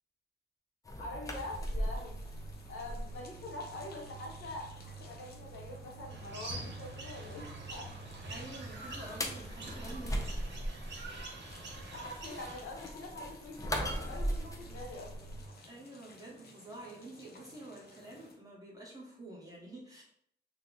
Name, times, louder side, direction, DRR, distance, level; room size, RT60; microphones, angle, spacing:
sound 1, 0.9-15.5, equal, 15° left, 0.4 m, -41 dB
voice 1, 1.0-2.2 2.7-7.9 11.5-15.4, left 2 dB, 85° left, -1 dB, 1.0 m, -45 dB
sound 2, 1.3-18.4, left 2 dB, 55° left, 0.6 m, -57 dB
sound 3, 6.1-12.6, right 2 dB, 65° right, 0.7 m, -45 dB
voice 2, 8.3-10.3 15.7-20.0, right 2 dB, 20° right, -4 dB, 0.9 m, -48 dB
2.8 x 2.4 x 3.7 m, 0.66 s
wide cardioid pair, 125°, 20 cm